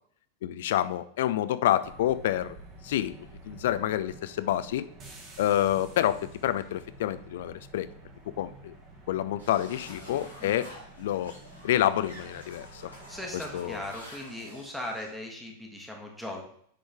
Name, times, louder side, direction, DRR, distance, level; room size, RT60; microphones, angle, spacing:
voice 1, 0.4-2.6 2.8-3.1 3.5-4.9 5.4-7.9 8.4-8.7 9.1-10.7 11.0-11.3 11.6-12.8 13.5-13.8, left 12 dB, 55° left, 14 dB, 0.4 m, -28 dB
sound 1, 1.8-13.9, right 2 dB, 30° right, 1.6 m, -49 dB
sound 2, 9.4-15.1, equal, 85° right, 2.9 m, -48 dB
voice 2, 13.1-16.4, left 1 dB, ahead, -1 dB, 1.2 m, -38 dB
9.8 x 3.8 x 3.5 m, 0.64 s
figure-of-eight pair, 90°, 0 cm